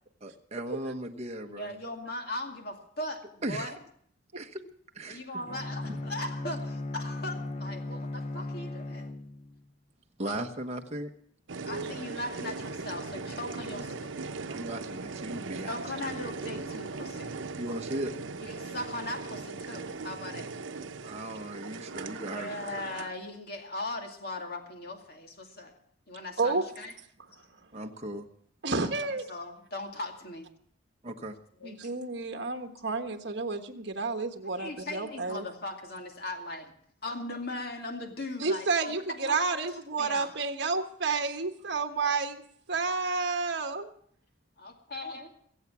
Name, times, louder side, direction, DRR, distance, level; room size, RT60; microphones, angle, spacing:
voice 1, 0.2-1.7 3.4-3.7 4.4-4.6 4.9-5.4 5.8-6.0 10.2-11.1 13.8-13.9 14.5-15.8 17.5-18.1 21.0-22.7 27.7-28.3 31.0-31.4, right 1 dB, 35° right, 4 dB, 1.2 m, -37 dB
voice 2, 1.5-3.7 5.1-9.1 11.6-14.1 15.7-17.4 18.4-20.5 22.2-25.7 26.1-26.9 28.8-30.5 31.6-31.8 34.6-36.6 37.0-39.6 40.0-40.3 44.6-45.3, left 1 dB, 55° left, 3 dB, 2.4 m, -39 dB
Bowed string instrument, 5.5-9.7, left 2 dB, 35° left, 0.7 m, -37 dB
sound 1, 11.5-23.1, right 3 dB, 90° right, 0.8 m, -39 dB
voice 3, 28.6-29.2 31.6-35.5 38.4-42.4 42.7-43.9, right 4 dB, 60° right, 6 dB, 1.4 m, -30 dB
22.5 x 8.3 x 6.1 m, 0.65 s
head